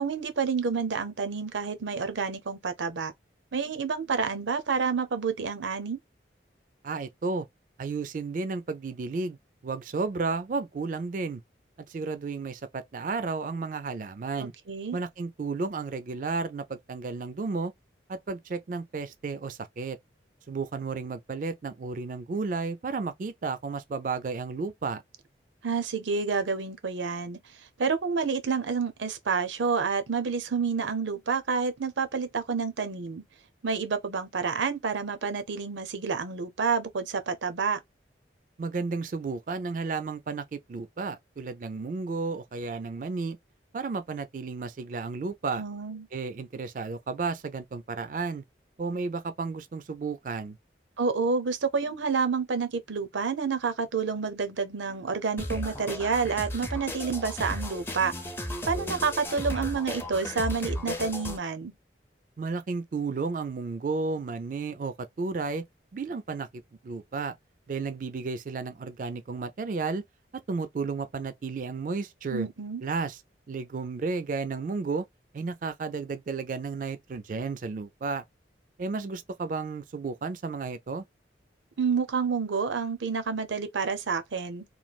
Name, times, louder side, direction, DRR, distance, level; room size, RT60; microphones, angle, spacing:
voice 1, 0.0-3.1 3.5-6.0 14.7-15.0 25.6-27.4 27.8-33.2 33.6-37.8 45.6-46.1 51.0-58.1 58.6-61.7 72.3-72.8 81.8-84.6, right 5 dB, 85° right, 0.6 m, -29 dB
voice 2, 6.8-7.5 7.8-9.4 9.6-11.4 11.9-14.5 14.9-17.7 18.1-20.0 20.5-25.0 38.6-43.4 43.7-45.6 46.1-48.4 48.8-50.6 62.4-65.6 65.9-67.4 67.7-70.0 70.5-72.5 72.8-73.2 73.5-75.1 75.3-78.2 78.8-81.0, right 4 dB, 45° right, 0.3 m, -33 dB
sound 1, 55.4-61.4, left 1 dB, 15° left, 0.5 m, -35 dB
3.1 x 2.3 x 2.3 m
head